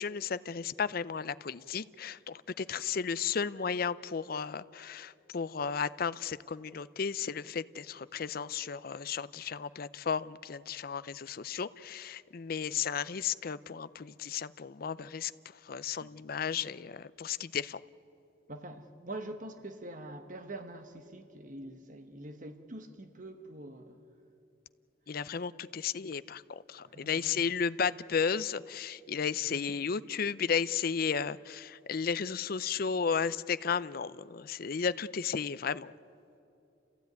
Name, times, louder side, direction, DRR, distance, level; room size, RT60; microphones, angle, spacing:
voice 1, 0.0-15.3 15.6-17.8 25.1-35.9, left 6 dB, 50° left, 0.5 m, -34 dB
voice 2, 18.5-24.0 26.8-27.4 29.5-29.6, right 1 dB, 45° right, 1.3 m, -45 dB
29.5 x 15.5 x 9.3 m
head